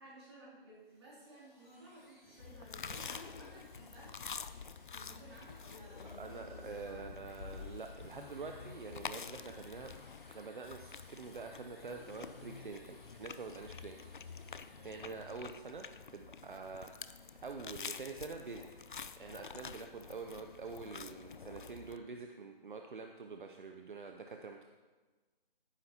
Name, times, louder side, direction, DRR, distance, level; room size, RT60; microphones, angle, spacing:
voice 1, 0.0-4.1 4.9-7.0 14.6-14.9, right 1 dB, 25° right, -7 dB, 3.2 m, -56 dB
sound 1, 0.7-15.3, left 1 dB, 10° left, 1.5 m, -63 dB
sound 2, 2.4-22.0, left 6 dB, 60° left, 0.5 m, -48 dB
voice 2, 6.0-9.9 10.3-14.1 14.8-18.7 19.2-24.7, right 4 dB, 60° right, 4 dB, 0.8 m, -46 dB
14.0 x 10.0 x 2.9 m, 1.3 s
hypercardioid pair, 180°, 29 cm